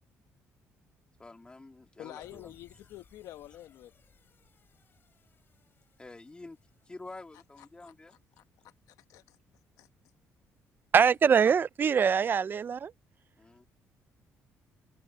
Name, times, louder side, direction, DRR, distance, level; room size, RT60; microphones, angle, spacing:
voice 1, 1.2-2.5 6.0-6.6 6.9-8.2 11.2-11.3 13.4-13.7, left 2 dB, 15° left, 2.2 m, -48 dB
voice 2, 2.0-3.9 7.8-7.9 8.4-9.4 9.8-9.9, left 14 dB, 80° left, 1.1 m, -48 dB
sound 1, 2.2-8.6, left 6 dB, 40° left, 6.0 m, -65 dB
voice 3, 10.9-12.9, right 7 dB, 40° right, 0.5 m, -23 dB
open air
cardioid pair, 105°, 6 cm